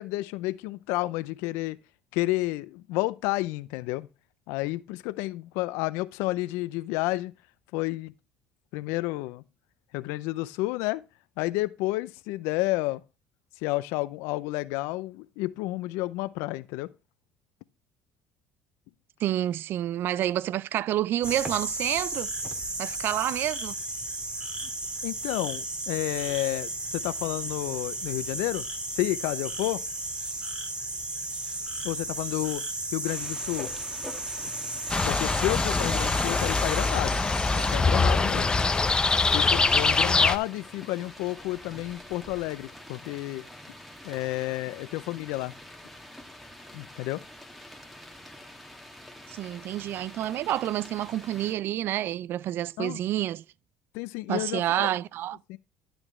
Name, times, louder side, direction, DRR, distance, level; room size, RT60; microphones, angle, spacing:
voice 1, 0.0-1.8 2.1-4.1 4.5-7.3 7.7-8.1 8.7-9.4 9.9-11.0 11.4-13.0 13.6-16.9 25.0-28.7 28.9-29.8 31.8-32.6 32.9-33.7 35.0-37.2 37.5-38.5 39.3-43.4 44.0-45.5 46.7-47.2 52.8-53.0 53.9-54.9 55.5-55.6, left 19 dB, 85° left, 0.5 m, -30 dB
voice 2, 19.2-22.3 22.8-23.7 49.3-53.4 54.3-55.4, right 12 dB, 60° right, 0.4 m, -28 dB
sound 1, 21.2-37.8, right 2 dB, 20° right, 2.0 m, -34 dB
sound 2, 33.0-51.5, left 1 dB, ahead, 1.7 m, -46 dB
sound 3, 34.9-40.4, left 3 dB, 20° left, 0.7 m, -23 dB
11.5 x 7.1 x 3.1 m
supercardioid pair, 90°, 4 cm